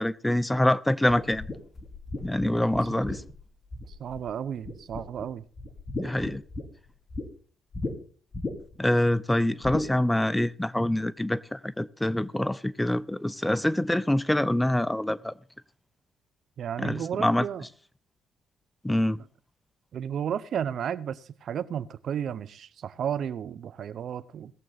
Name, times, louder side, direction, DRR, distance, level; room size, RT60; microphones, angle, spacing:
voice 1, 0.0-1.5 2.2-3.2 5.9-6.4 8.8-15.3 16.8-17.5 18.8-19.2, left 1 dB, 10° left, 0.5 m, -25 dB
sound 1, 1.1-4.3 4.6-5.3 5.6-7.3 7.7-7.9 8.3-8.8 9.6-9.9, left 2 dB, 30° left, 2.4 m, -35 dB
voice 2, 3.9-5.4 16.6-17.6 19.9-24.5, right 8 dB, 60° right, 0.7 m, -33 dB
19.0 x 7.5 x 4.0 m
cardioid pair, 90°, 0 cm